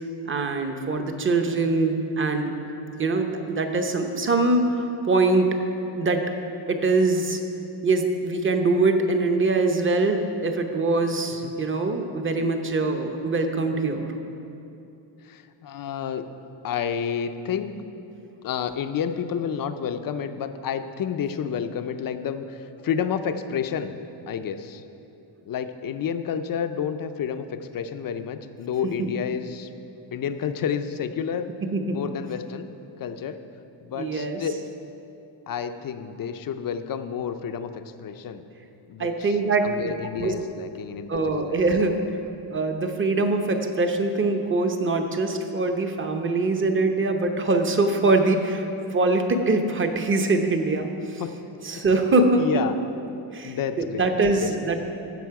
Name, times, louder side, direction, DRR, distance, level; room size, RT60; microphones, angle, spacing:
voice 1, 0.2-2.5 3.0-5.5 6.0-6.2 6.7-7.4 7.8-14.1 28.8-28.9 31.7-32.0 33.9-34.4 39.0-40.3 41.1-41.9 42.5-48.7 48.9-51.2 51.6-52.6 53.3-54.8, right 3 dB, 25° right, 5 dB, 0.8 m, -23 dB
voice 2, 15.2-16.2 16.6-17.9 18.4-23.9 24.3-24.8 25.5-29.7 30.1-31.5 31.9-32.7 33.0-33.4 33.8-34.5 35.5-38.5 38.9-39.4 39.6-41.8 51.2-51.3 52.4-52.7 53.4-54.1 54.4-54.5, left 7 dB, 45° left, 9 dB, 0.5 m, -30 dB
15.5 x 6.6 x 4.7 m, 2.8 s
cardioid pair, 145°, 48 cm